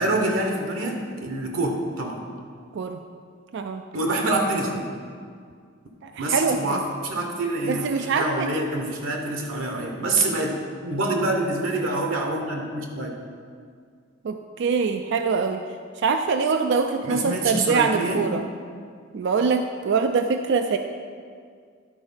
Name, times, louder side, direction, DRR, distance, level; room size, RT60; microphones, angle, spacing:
voice 1, 0.0-2.2 3.9-4.8 6.2-10.6 10.8-13.2 17.0-18.2, right 2 dB, 75° right, 2 dB, 1.1 m, -26 dB
voice 2, 6.0-6.8 7.7-8.7 14.2-15.6 16.0-18.5 19.1-20.8, right 5 dB, 60° right, 6 dB, 0.4 m, -24 dB
11.0 x 4.3 x 5.5 m, 2.1 s
head